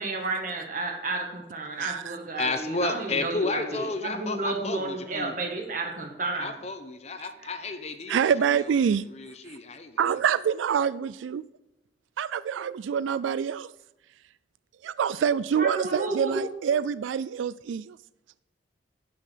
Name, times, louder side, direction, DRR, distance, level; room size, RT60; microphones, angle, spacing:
voice 1, 0.0-6.6 15.6-16.5, right 3 dB, 45° right, 1 dB, 2.0 m, -31 dB
voice 2, 1.8-2.2 7.2-7.3 8.1-9.0 10.0-11.4 12.2-13.7 14.8-18.0, right 7 dB, 85° right, 17 dB, 0.3 m, -26 dB
voice 3, 2.4-5.3 6.3-8.3 9.1-10.0, left 3 dB, 35° left, 8 dB, 0.9 m, -32 dB
11.0 x 6.3 x 6.7 m, 0.92 s
head